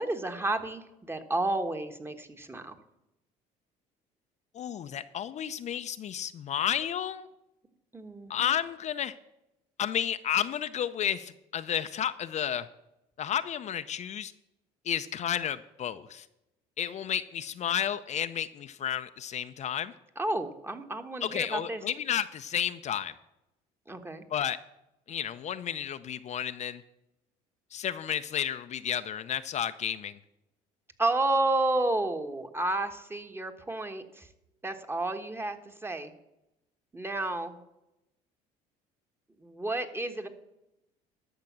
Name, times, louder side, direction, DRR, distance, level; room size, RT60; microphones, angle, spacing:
voice 1, 0.0-2.8 7.9-8.5 20.2-21.8 23.9-24.2 31.0-34.3 34.6-36.1 36.9-37.6 39.4-40.3, right 2 dB, 15° right, 7 dB, 1.3 m, -31 dB
voice 2, 4.5-7.3 8.3-9.1 9.8-12.7 13.2-14.3 14.8-16.3 16.8-19.9 21.2-23.1 24.3-24.6 25.1-26.8 27.7-30.2, left 9 dB, 45° left, 10 dB, 0.5 m, -32 dB
12.0 x 6.5 x 7.3 m, 0.89 s
supercardioid pair, 90°, 16 cm